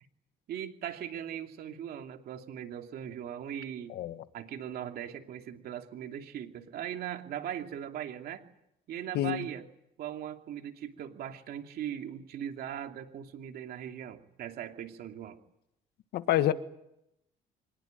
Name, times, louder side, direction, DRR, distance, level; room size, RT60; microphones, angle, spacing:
voice 1, 0.5-4.0 4.3-8.4 8.9-9.7 10.0-15.4, right 10 dB, 65° right, 2.7 m, -39 dB
voice 2, 3.9-4.2 9.1-9.5 16.1-16.5, left 13 dB, 75° left, 1.7 m, -28 dB
25.0 x 20.5 x 9.3 m
cardioid pair, 110°, 17 cm